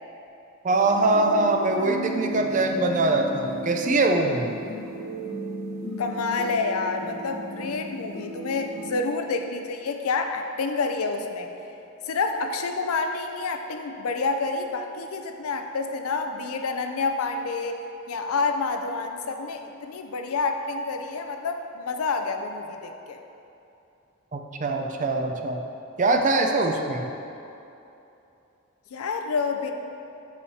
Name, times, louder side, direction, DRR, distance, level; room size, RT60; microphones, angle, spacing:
voice 1, 0.6-4.6 24.3-25.6 26.0-27.1, right 2 dB, 35° right, 3 dB, 0.5 m, -23 dB
sound 1, 0.7-8.9, right 1 dB, 45° left, 1.0 m, -35 dB
voice 2, 6.0-11.5 12.0-17.8 18.1-23.2 28.9-29.7, left 4 dB, 85° left, 5 dB, 0.5 m, -28 dB
8.4 x 6.3 x 2.8 m, 2.8 s
head